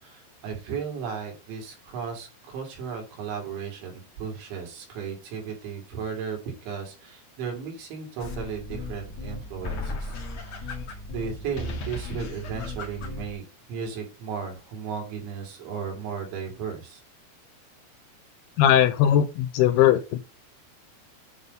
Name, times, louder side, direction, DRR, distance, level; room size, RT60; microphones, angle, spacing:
voice 1, 0.0-17.0, right 6 dB, 90° right, 5.0 m, -35 dB
sound 1, 8.2-13.3, left 2 dB, 55° left, 2.0 m, -35 dB
voice 2, 18.6-20.2, left 11 dB, 85° left, 2.3 m, -19 dB
9.4 x 4.1 x 5.2 m
omnidirectional pair, 5.1 m